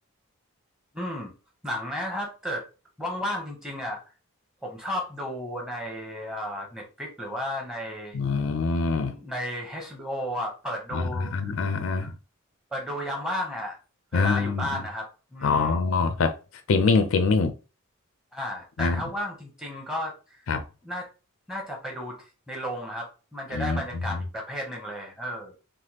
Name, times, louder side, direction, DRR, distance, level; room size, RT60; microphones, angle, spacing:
voice 1, 0.9-1.3 1.6-2.7 3.0-4.0 4.6-8.2 9.0-11.5 12.0-12.1 12.7-13.8 14.1-15.9 18.3-20.4 20.8-21.1 21.5-25.6, equal, 5° right, 0.8 m, -33 dB
voice 2, 8.1-9.1 10.9-12.1 14.1-14.8 15.4-16.4 16.7-17.5 18.8-19.0 20.5-20.6 23.5-24.2, left 4 dB, 65° left, 0.4 m, -24 dB
3.4 x 2.2 x 2.8 m
head